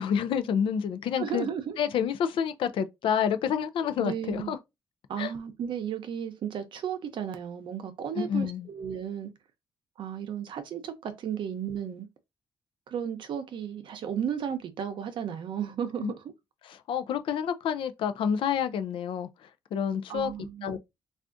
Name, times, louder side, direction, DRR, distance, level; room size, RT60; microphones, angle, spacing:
voice 1, 0.0-1.5 1.8-4.6 5.2-5.3 8.2-8.7 16.0-16.1 16.6-20.3 20.6-20.8, left 8 dB, 80° left, 0.4 m, -28 dB
voice 2, 1.2-1.8 4.0-4.6 5.1-9.3 10.0-12.1 12.9-16.1 20.1-20.8, right 8 dB, 70° right, 0.6 m, -34 dB
3.4 x 2.4 x 2.5 m
cardioid pair, 130°, 9 cm